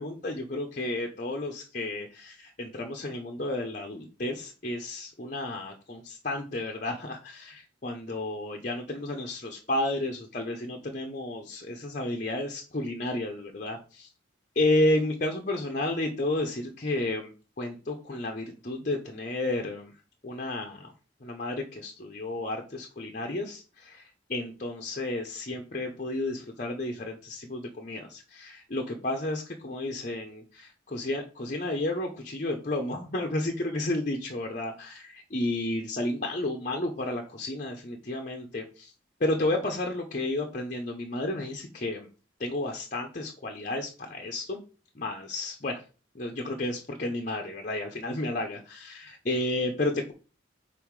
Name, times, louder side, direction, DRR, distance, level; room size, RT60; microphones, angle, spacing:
voice 1, 0.0-14.1 14.6-17.3 17.6-19.9 20.2-20.9 21.2-24.0 24.3-38.9 39.2-42.1 42.4-44.6 45.0-45.8 46.1-50.1, left 1 dB, 40° left, 2 dB, 0.8 m, -32 dB
5.6 x 4.2 x 4.7 m, 0.35 s
head